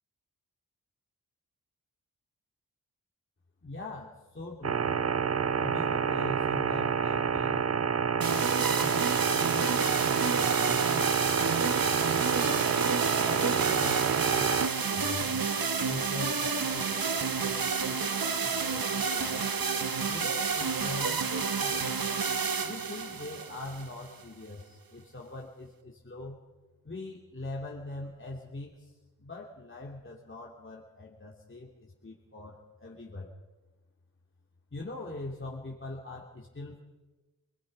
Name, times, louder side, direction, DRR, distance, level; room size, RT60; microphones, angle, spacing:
voice 1, 3.6-4.9 5.6-7.7 8.3-12.7 13.2-15.3 15.9-19.5 20.1-21.9 22.6-26.4 26.8-33.3 34.7-36.8, left 2 dB, 35° left, -2 dB, 3.0 m, -42 dB
sound 1, 4.6-14.7, right 6 dB, 45° right, 0.7 m, -28 dB
sound 2, 8.2-24.2, right 5 dB, 70° right, 1.6 m, -30 dB
27.0 x 20.5 x 5.5 m, 1.2 s
wide cardioid pair, 85°, 36 cm